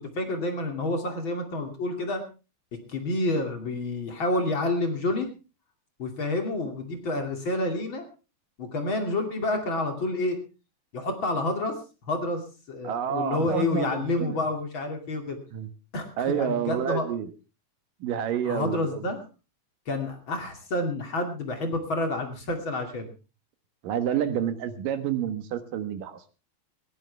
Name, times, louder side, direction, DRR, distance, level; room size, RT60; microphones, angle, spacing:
voice 1, 0.1-2.2 2.9-5.3 6.0-8.1 8.6-10.4 10.9-11.7 12.0-12.4 12.7-15.4 15.9-17.1 18.5-19.2 19.9-23.1, left 2 dB, 35° left, 5 dB, 2.5 m, -29 dB
voice 2, 12.8-14.4 15.5-15.7 16.2-17.3 18.0-19.0 23.8-26.2, right 9 dB, 65° right, 10 dB, 2.5 m, -29 dB
20.5 x 15.5 x 3.4 m, 0.33 s
omnidirectional pair, 5.2 m